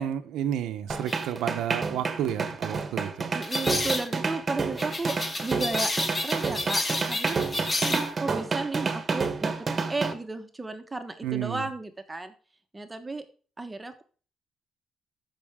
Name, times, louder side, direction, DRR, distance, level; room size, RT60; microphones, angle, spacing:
voice 1, 0.0-3.3 11.2-11.7, right 10 dB, 85° right, 0.8 m, -31 dB
sound 1, 0.9-10.1, right 4 dB, 35° right, 1.3 m, -29 dB
sound 2, 1.1-1.2 3.4-4.1 4.8-8.1, left 2 dB, 25° left, 1.5 m, -30 dB
voice 2, 3.3-5.9 6.2-7.4 7.9-9.5 9.9-12.3 12.7-13.3 13.6-14.0, right 3 dB, 20° right, 1.2 m, -33 dB
14.0 x 5.8 x 3.6 m
cardioid pair, 90°, 0 cm